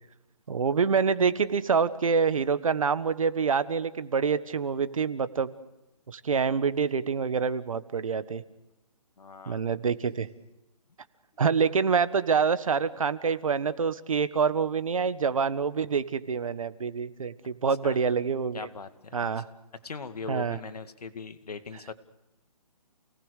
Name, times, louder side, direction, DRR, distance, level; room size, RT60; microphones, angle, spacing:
voice 1, 0.5-5.5 6.1-8.4 9.5-10.3 11.4-18.7 19.1-19.4 20.3-20.6, right 5 dB, 55° right, 14 dB, 1.5 m, -26 dB
voice 2, 9.2-9.6 17.8-18.0 18.5-19.4 19.8-21.9, left 5 dB, 70° left, 10 dB, 2.3 m, -40 dB
29.5 x 19.0 x 6.6 m, 0.99 s
hypercardioid pair, 175°, 20 cm